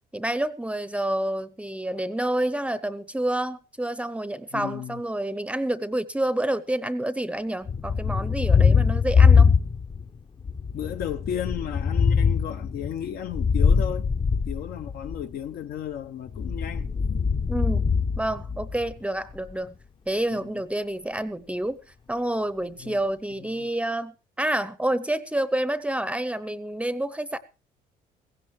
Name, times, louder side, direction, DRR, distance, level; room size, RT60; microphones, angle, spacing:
voice 1, 0.1-9.5 17.5-17.8 18.2-19.8 20.1-21.8 22.1-27.4, right 1 dB, 5° right, 0.7 m, -28 dB
voice 2, 4.5-5.0 8.7-8.8 10.7-16.9 20.3-20.4 22.8-23.0 23.4-23.7, left 10 dB, 65° left, 0.8 m, -34 dB
Thunder, 7.7-10.1 10.4-15.2 16.3-18.9, left 5 dB, 30° left, 0.7 m, -22 dB
16.0 x 16.0 x 3.1 m
cardioid pair, 110°, 17 cm